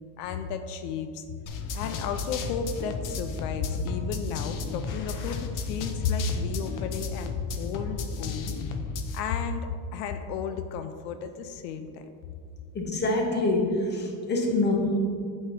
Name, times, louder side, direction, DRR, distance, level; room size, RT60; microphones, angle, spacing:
voice 1, 0.2-1.2 1.7-8.5 9.1-12.1, left 6 dB, 80° left, 8 dB, 0.6 m, -33 dB
sound 1, 1.5-9.2, left 4 dB, 40° left, 0.6 m, -33 dB
voice 2, 12.7-15.0, left 2 dB, 20° left, 0 dB, 1.0 m, -25 dB
8.0 x 3.2 x 4.8 m, 2.2 s
supercardioid pair, 120°, 48 cm